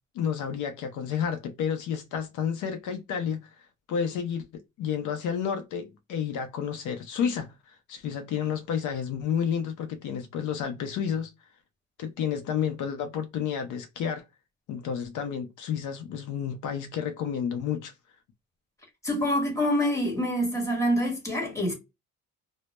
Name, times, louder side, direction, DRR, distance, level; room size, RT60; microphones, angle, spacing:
voice 1, 0.1-3.5 3.9-11.3 12.0-14.2 14.7-17.9, left 7 dB, 80° left, 0.6 m, -31 dB
voice 2, 19.0-21.7, equal, 10° left, 1.0 m, -26 dB
2.1 x 2.1 x 2.8 m
cardioid pair, 135°, 30 cm